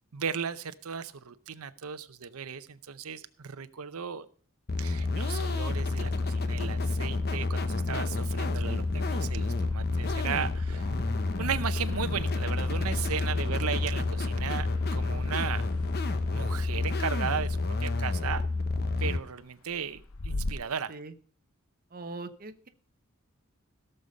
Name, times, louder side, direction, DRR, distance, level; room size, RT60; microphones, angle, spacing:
voice 1, 0.1-4.3 4.8-10.9 11.4-15.6 16.3-18.5 19.0-20.9, right 7 dB, 85° right, 11 dB, 0.7 m, -36 dB
sound 1, 4.7-19.2, left 3 dB, 45° left, 0.9 m, -29 dB
sound 2, 5.4-20.5, left 2 dB, 80° left, 0.9 m, -46 dB
voice 2, 21.9-22.7, right 3 dB, 40° right, 9 dB, 0.8 m, -41 dB
16.5 x 6.7 x 5.3 m, 0.41 s
head